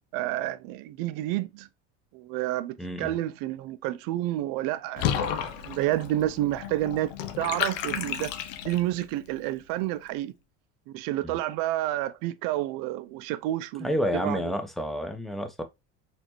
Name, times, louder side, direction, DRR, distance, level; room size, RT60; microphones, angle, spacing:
voice 1, 0.1-1.7 2.1-8.3 8.6-10.3 10.9-14.5, right 14 dB, 60° right, 0.6 m, -30 dB
voice 2, 2.8-3.1 11.2-11.4 13.8-15.6, equal, ahead, 0.8 m, -29 dB
Water / Bathtub (filling or washing), 5.0-9.0, left 9 dB, 75° left, 0.7 m, -32 dB
4.2 x 2.8 x 2.9 m
hypercardioid pair, 80°, 38 cm